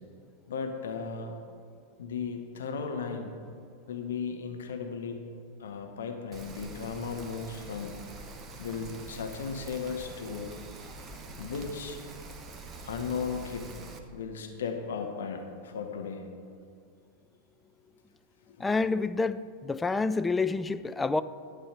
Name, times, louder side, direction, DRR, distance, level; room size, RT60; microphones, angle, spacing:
voice 1, 0.5-1.3 2.0-3.4 3.9-5.2 5.6-8.0 8.6-10.5 11.4-12.0 12.8-13.7 14.1-16.2 18.5-18.6, left 5 dB, 65° left, 1.0 m, -36 dB
Rain, 6.3-14.0, right 3 dB, 25° right, 0.9 m, -45 dB
voice 2, 18.6-21.2, left 3 dB, 10° left, 0.3 m, -28 dB
11.5 x 8.2 x 4.9 m
figure-of-eight pair, 90°, 0 cm